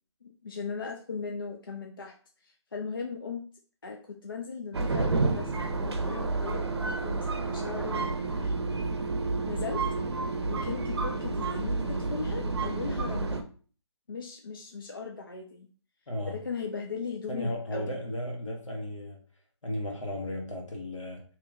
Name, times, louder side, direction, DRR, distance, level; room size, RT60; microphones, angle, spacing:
voice 1, 0.2-2.2 2.4-3.4 3.8-8.9 9.5-9.8 10.5-13.4 14.1-15.7 16.3-18.0, left 5 dB, 45° left, 2 dB, 0.4 m, -38 dB
sound 1, 4.7-13.4, right 3 dB, 55° right, 0.6 m, -30 dB
voice 2, 16.1-16.4 17.3-19.2 19.6-21.2, left 1 dB, 80° left, 1 dB, 1.6 m, -35 dB
3.1 x 2.9 x 3.6 m, 0.41 s
hypercardioid pair, 180°, 16 cm